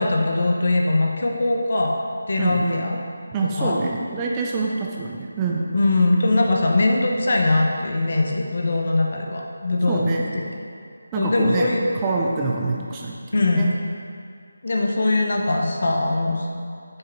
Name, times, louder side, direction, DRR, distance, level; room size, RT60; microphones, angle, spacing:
voice 1, 0.0-2.0 2.3-3.0 3.6-3.8 5.7-10.1 10.3-10.4 11.1-11.8 13.3-13.7 14.6-16.5, left 2 dB, 55° left, 1 dB, 0.9 m, -21 dB
voice 2, 2.4-2.8 3.3-5.7 9.9-10.4 11.1-13.9, right 3 dB, 15° right, -2 dB, 0.5 m, -26 dB
6.6 x 3.6 x 5.9 m, 2.3 s
figure-of-eight pair, 165°, 0 cm